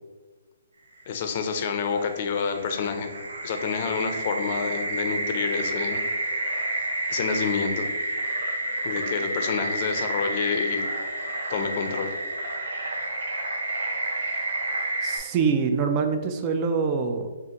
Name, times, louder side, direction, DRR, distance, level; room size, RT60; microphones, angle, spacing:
voice 1, 1.1-3.1 3.4-6.0 7.1-7.9 8.8-10.8 11.5-12.1, left 6 dB, 40° left, 6 dB, 0.5 m, -28 dB
sound 1, 1.1-15.2, right 1 dB, 80° right, 0.9 m, -30 dB
voice 2, 15.0-17.3, right 5 dB, 25° right, 5 dB, 0.3 m, -25 dB
5.5 x 2.5 x 2.9 m, 1.3 s
hypercardioid pair, 160°, 0 cm